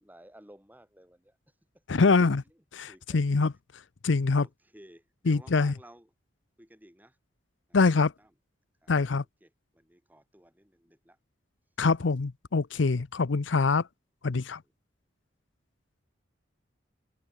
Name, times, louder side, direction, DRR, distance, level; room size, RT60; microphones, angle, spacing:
voice 1, 0.0-1.4 1.7-1.8 2.4-3.3 4.3-6.1 6.6-7.2 7.7-7.8 8.2-8.3 8.8-9.1 9.4-11.2 14.4-14.7, right 1 dB, 10° right, 4.9 m, -56 dB
voice 2, 1.9-2.4 2.7-3.5 4.0-4.5 5.3-5.7 7.7-8.1 8.9-9.2 11.8-13.8 14.2-14.6, left 4 dB, 75° left, 0.7 m, -24 dB
head